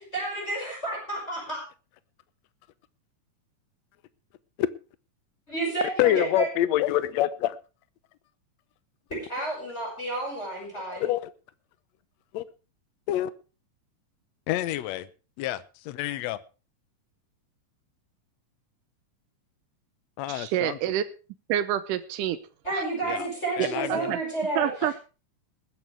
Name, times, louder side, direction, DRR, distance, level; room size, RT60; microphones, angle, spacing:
voice 1, 0.0-1.6 5.5-6.5 9.1-11.1 22.6-24.7, right 2 dB, 20° left, -2 dB, 6.1 m, -30 dB
voice 2, 6.0-7.6 11.0-11.2 12.3-12.4 13.1-13.3 14.5-15.1 15.4-15.6 15.9-16.4 20.2-20.8 23.1-23.2 23.6-24.1, left 13 dB, 75° left, 15 dB, 1.8 m, -26 dB
voice 3, 20.3-21.0 21.5-22.4 22.7-22.8 23.9-24.2 24.6-24.9, right 11 dB, 85° right, 10 dB, 2.4 m, -27 dB
20.5 x 10.5 x 3.4 m, 0.34 s
omnidirectional pair, 3.7 m